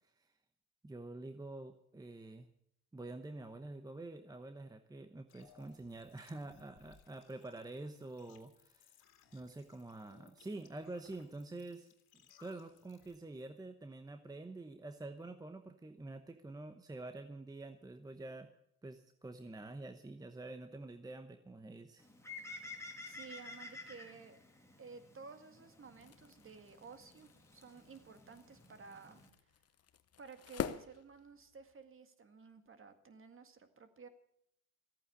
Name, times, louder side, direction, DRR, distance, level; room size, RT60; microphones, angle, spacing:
voice 1, 0.8-2.5 2.9-8.9 9.3-11.9 12.4-18.5 18.8-22.1, right 2 dB, 10° right, 8 dB, 0.9 m, -47 dB
sound 1, 5.3-13.2, left 7 dB, 65° left, 2.4 m, -65 dB
Bird, 22.0-29.3, left 3 dB, 5° left, 2.4 m, -52 dB
voice 2, 23.0-24.4 24.8-29.2 30.2-34.1, right 5 dB, 30° right, 9 dB, 1.9 m, -54 dB
sound 2, 25.8-31.8, left 9 dB, 40° left, 0.9 m, -47 dB
14.5 x 8.9 x 8.5 m, 0.75 s
supercardioid pair, 95°, 39 cm